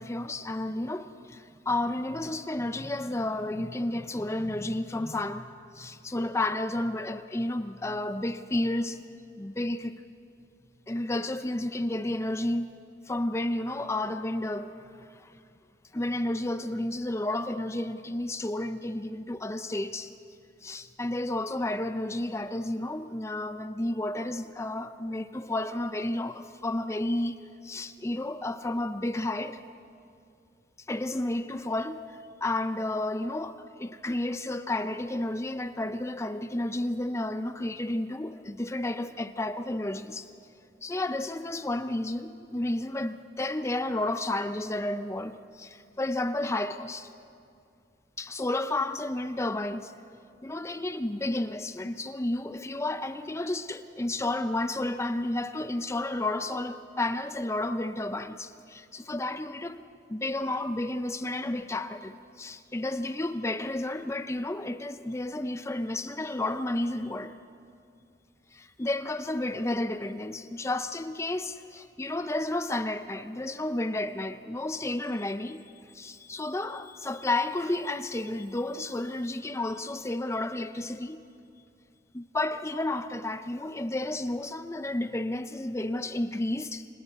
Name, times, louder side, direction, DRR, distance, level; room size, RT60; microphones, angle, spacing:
voice 1, 0.0-5.5 5.7-9.0 9.4-9.9 10.9-12.8 13.1-15.3 15.9-20.1 20.6-29.6 30.9-40.3 40.8-47.1 48.2-49.9 50.4-59.8 60.1-67.4 68.5-75.6 75.9-81.2 82.1-86.9, left 1 dB, 15° left, 0.5 m, -31 dB
29.5 x 26.5 x 4.2 m
head